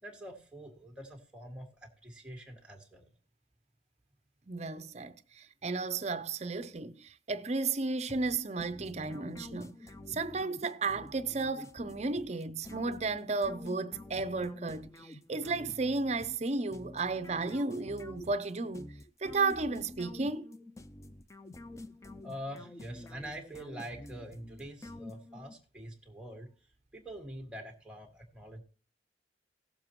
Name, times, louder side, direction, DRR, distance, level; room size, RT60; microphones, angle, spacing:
voice 1, 0.0-3.1 22.2-28.6, equal, 5° right, 2.0 m, -45 dB
voice 2, 4.5-9.8 10.1-18.9 19.2-20.5, right 3 dB, 40° right, 0.6 m, -33 dB
sound 1, 8.1-25.6, left 1 dB, 15° left, 0.4 m, -49 dB
17.5 x 7.2 x 3.0 m
head